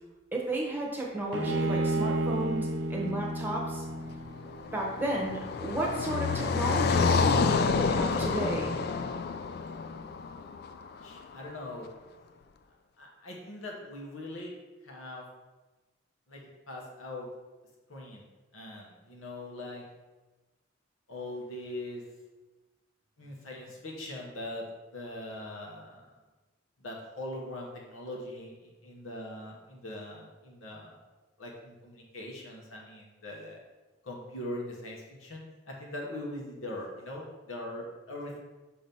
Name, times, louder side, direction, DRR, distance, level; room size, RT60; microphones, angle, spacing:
voice 1, 0.3-3.8 4.7-8.7, right 1 dB, 10° right, -3 dB, 1.0 m, -33 dB
Bowed string instrument, 1.3-4.6, right 1 dB, 60° right, 0.6 m, -31 dB
Car passing by, 4.0-11.2, left 4 dB, 50° left, 0.3 m, -29 dB
voice 2, 10.9-11.9 13.0-14.5 14.8-15.2 16.3-17.3 17.9-18.2 18.5-19.9 21.1-22.0 23.2-24.7 24.9-26.1 26.8-31.0 31.4-33.6 34.0-38.4, left 1 dB, 85° left, -1 dB, 1.2 m, -41 dB
6.1 x 2.9 x 5.3 m, 1.2 s
head